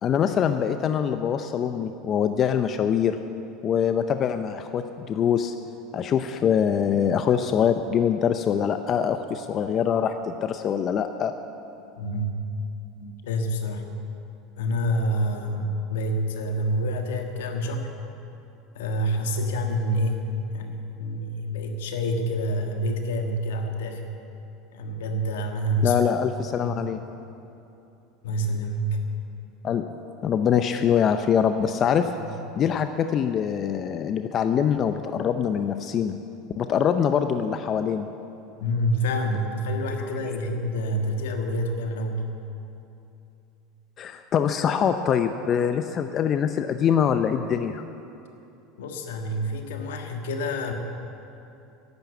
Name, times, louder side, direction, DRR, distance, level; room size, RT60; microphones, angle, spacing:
voice 1, 0.0-3.2 3.6-5.5 5.9-11.3 25.8-27.0 29.6-29.8 30.2-32.1 32.6-36.1 36.6-38.1 44.0-47.8, left 8 dB, 40° left, 8 dB, 0.6 m, -24 dB
voice 2, 12.0-12.3 13.0-13.8 14.6-17.9 18.7-20.3 20.5-24.0 24.7-26.0 26.6-26.7 28.2-29.0 38.6-42.3 48.8-50.7, equal, 85° left, 4 dB, 1.5 m, -27 dB
10.5 x 10.5 x 8.1 m, 2.8 s
supercardioid pair, 100°, 0 cm